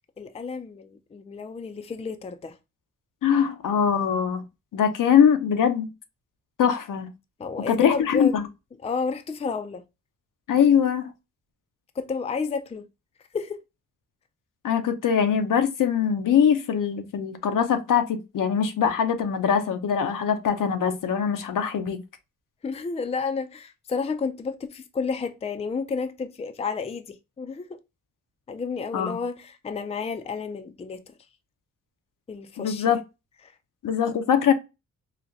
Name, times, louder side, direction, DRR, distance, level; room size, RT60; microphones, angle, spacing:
voice 1, 0.2-2.6 7.4-8.4 8.8-9.8 12.0-12.9 13.3-13.6 22.6-27.8 28.5-31.1 32.3-32.9, left 5 dB, 20° left, 0.4 m, -31 dB
voice 2, 3.2-4.4 4.7-5.9 6.6-7.1 7.7-8.5 10.5-11.1 14.6-22.0 28.9-29.1 32.6-33.0 33.8-34.5, left 8 dB, 70° left, 0.7 m, -22 dB
4.0 x 2.2 x 2.5 m
cardioid pair, 65°, 33 cm